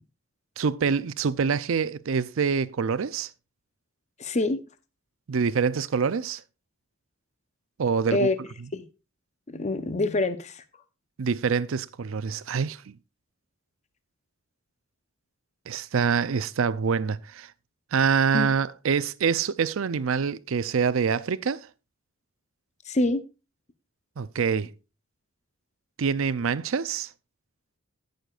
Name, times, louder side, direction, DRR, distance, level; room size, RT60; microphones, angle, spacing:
voice 1, 0.6-3.3 5.3-6.4 7.8-8.3 11.2-12.9 15.7-17.5 17.9-21.7 24.2-24.7 26.0-27.1, right 6 dB, 65° right, 0.5 m, -25 dB
voice 2, 4.2-4.6 8.1-8.4 8.7-8.8 9.5-10.6 18.3-18.5 22.9-23.2, left 2 dB, 30° left, 0.7 m, -25 dB
17.0 x 6.5 x 2.4 m
head